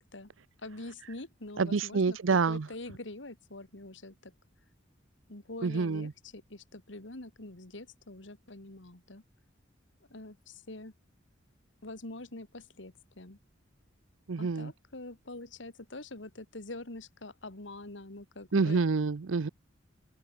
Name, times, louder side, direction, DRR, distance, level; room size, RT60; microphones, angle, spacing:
voice 1, 0.6-4.3 5.3-9.2 10.1-10.9 11.8-13.4 14.4-18.8, left 2 dB, 70° left, 2.4 m, -45 dB
voice 2, 1.6-2.7 5.6-6.1 14.3-14.7 18.5-19.5, right 4 dB, 90° right, 0.6 m, -27 dB
head